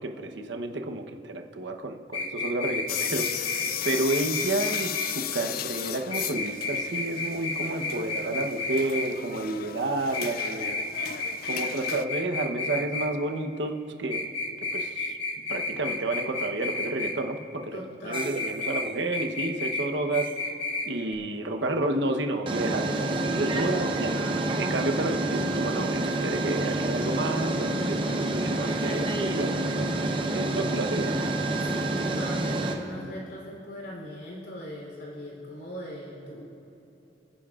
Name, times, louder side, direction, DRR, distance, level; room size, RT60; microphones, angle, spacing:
voice 1, 0.0-10.8 11.4-14.3 14.6-15.2 15.5-20.3 20.8-24.2 24.6-31.2, right 2 dB, 80° right, 4 dB, 0.9 m, -31 dB
sound 1, 2.1-5.1 6.1-9.1 10.1-13.1 14.1-17.1 18.1-18.9 19.1-19.9 20.1-20.9 21.1-21.2, left 3 dB, 30° left, 1.0 m, -31 dB
sound 2, 2.9-12.0, left 11 dB, 50° left, 0.3 m, -35 dB
voice 2, 17.7-18.3 31.6-36.4, equal, 70° left, -3 dB, 3.3 m, -40 dB
sound 3, 18.1-18.6 20.3-20.4 22.5-32.8, right 2 dB, 30° right, 0.8 m, -28 dB
29.0 x 10.0 x 2.4 m, 2.9 s
head